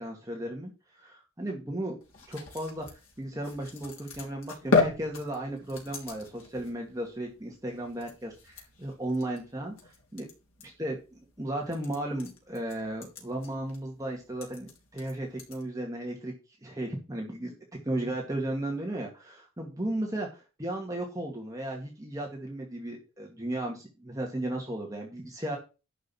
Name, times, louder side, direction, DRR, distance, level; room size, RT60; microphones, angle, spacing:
voice 1, 0.0-2.0 2.3-10.3 10.8-16.3 16.6-17.5 17.9-25.6, right 1 dB, 15° right, 0 dB, 2.3 m, -35 dB
sound 1, 2.0-15.6, left 3 dB, 75° left, 3.5 m, -36 dB
11.5 x 5.3 x 6.1 m, 0.30 s
head